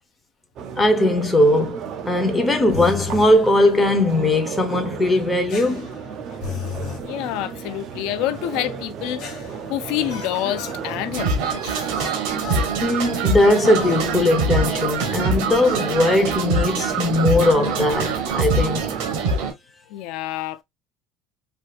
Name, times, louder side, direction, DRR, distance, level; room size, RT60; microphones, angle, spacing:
sound 1, 0.6-19.5, right 6 dB, 45° right, 0.6 m, -33 dB
voice 1, 0.8-5.9 12.8-18.8, left 1 dB, 10° left, 0.7 m, -19 dB
sound 2, 2.7-3.4 5.5-7.1 9.2-10.8 11.9-12.7 13.8-14.1 15.6-15.9, left 7 dB, 50° left, 1.3 m, -34 dB
voice 2, 7.0-9.2 9.7-11.9 19.9-20.6, left 14 dB, 65° left, 0.3 m, -27 dB
sound 3, 11.1-19.5, right 3 dB, 80° right, 1.1 m, -24 dB
3.4 x 2.7 x 2.3 m
cardioid pair, 160°, 0 cm